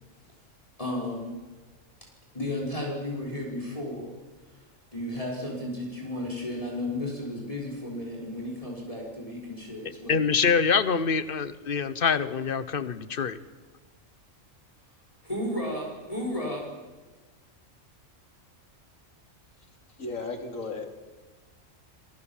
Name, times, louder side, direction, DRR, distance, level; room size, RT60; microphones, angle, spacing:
voice 1, 0.8-1.4 2.3-4.2 4.5-4.6 4.9-10.2 15.2-16.7, left 1 dB, 25° left, -2 dB, 5.9 m, -33 dB
voice 2, 10.1-13.4, left 6 dB, 45° left, 14 dB, 1.3 m, -25 dB
voice 3, 20.0-20.9, left 3 dB, 85° left, 5 dB, 3.4 m, -34 dB
27.5 x 24.0 x 7.4 m, 1.2 s
omnidirectional pair, 1.4 m